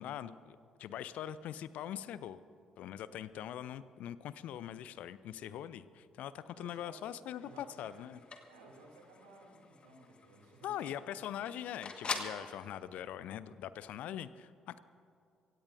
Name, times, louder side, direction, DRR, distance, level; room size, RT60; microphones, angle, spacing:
voice 1, 0.0-2.4 2.8-8.2 10.6-14.8, left 10 dB, 60° left, 16 dB, 0.5 m, -42 dB
voice 2, 6.5-7.9 8.5-11.1, right 2 dB, 75° right, 0 dB, 2.6 m, -57 dB
sound 1, 7.3-12.5, left 5 dB, 40° left, 1.5 m, -45 dB
25.5 x 16.5 x 2.6 m, 2.5 s
figure-of-eight pair, 45°, 3 cm